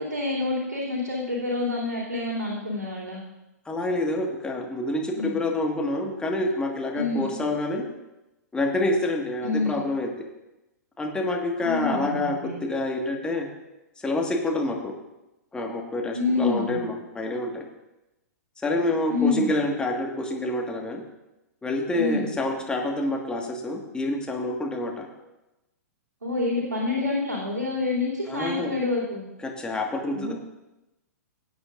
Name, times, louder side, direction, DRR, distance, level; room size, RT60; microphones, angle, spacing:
voice 1, 0.0-3.2 5.1-5.4 6.9-7.4 9.4-9.8 11.6-12.5 16.1-16.8 19.1-19.5 21.9-22.3 26.2-29.2 30.1-30.3, left 3 dB, 80° right, -10 dB, 3.1 m, -27 dB
voice 2, 3.7-7.9 8.5-10.2 11.0-13.5 14.0-14.9 15.5-17.6 18.6-21.0 21.6-25.1 28.3-28.7 29.4-30.3, left 2 dB, 10° left, 0 dB, 1.7 m, -27 dB
18.5 x 8.7 x 2.6 m, 0.97 s
figure-of-eight pair, 110°, 9 cm